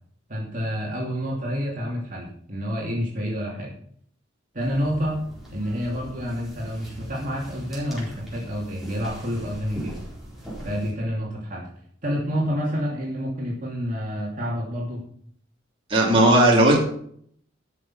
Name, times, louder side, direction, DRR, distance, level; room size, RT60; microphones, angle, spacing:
voice 1, 0.3-3.7 4.5-5.2 5.5-10.0 10.6-11.7 12.0-15.0, equal, 45° right, -4 dB, 2.7 m, -28 dB
sound 1, 4.6-10.9, right 1 dB, ahead, 4.4 m, -40 dB
voice 2, 15.9-16.8, right 1 dB, 30° right, -3 dB, 3.0 m, -16 dB
13.0 x 6.5 x 5.7 m, 0.63 s
head